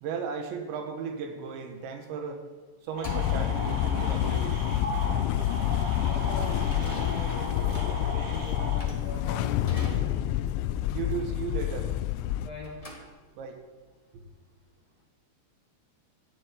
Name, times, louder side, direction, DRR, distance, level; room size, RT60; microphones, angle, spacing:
voice 1, 0.0-2.4 2.8-4.7 10.9-11.9 13.4-13.6, right 6 dB, 80° right, 5 dB, 3.7 m, -35 dB
sound 1, 2.9-12.3 12.6-13.6, left 1 dB, 15° left, 1.2 m, -47 dB
sound 2, 3.0-8.8, right 2 dB, 50° right, 4.9 m, -37 dB
sound 3, 3.1-12.5, left 12 dB, 85° left, 2.9 m, -28 dB
voice 2, 6.0-10.2 12.4-12.7, left 2 dB, 40° left, -2 dB, 3.2 m, -40 dB
13.0 x 7.7 x 9.7 m, 1.3 s
omnidirectional pair, 5.2 m